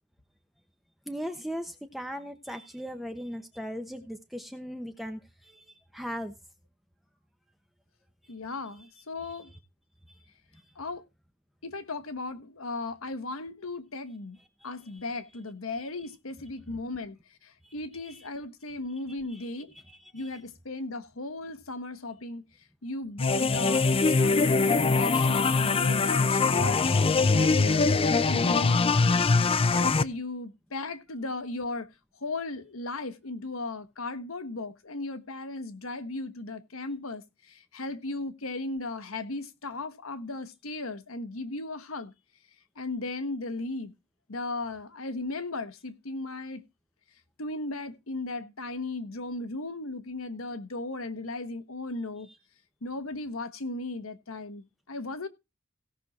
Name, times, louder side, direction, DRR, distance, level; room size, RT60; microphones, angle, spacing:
voice 1, 1.1-6.3 9.3-9.4 10.1-10.2 14.6-15.0 16.7-16.8 17.6-17.7 18.1-18.2 19.3-19.5 19.7-20.4, equal, ahead, 1.0 m, -39 dB
voice 2, 8.3-9.5 10.8-11.0 11.6-14.4 14.6-17.2 17.4-19.7 20.1-22.4 22.8-26.8 27.3-28.8 29.7-31.9 32.2-42.1 42.8-43.9 44.3-46.6 47.4-52.3 52.8-55.3, left 2 dB, 80° left, 1.3 m, -36 dB
sound 1, 23.2-30.0, left 4 dB, 25° left, 0.5 m, -23 dB
17.0 x 6.4 x 4.1 m
head